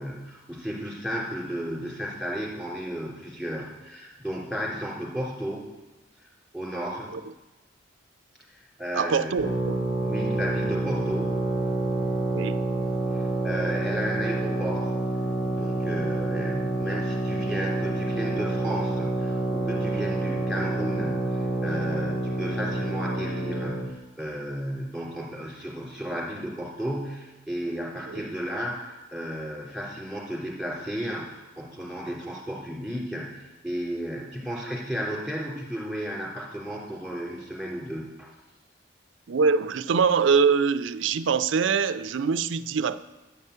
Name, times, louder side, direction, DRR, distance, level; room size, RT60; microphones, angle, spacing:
voice 1, 0.0-5.7 6.2-7.1 8.5-9.3 10.0-11.4 13.4-14.9 15.5-38.3, equal, ahead, -4 dB, 3.1 m, -33 dB
voice 2, 8.9-9.9 12.3-12.6 28.1-28.3 39.3-43.0, right 5 dB, 80° right, 13 dB, 0.5 m, -24 dB
sound 1, 9.4-23.9, right 2 dB, 30° left, 3.8 m, -28 dB
10.0 x 5.5 x 8.0 m, 1.1 s
head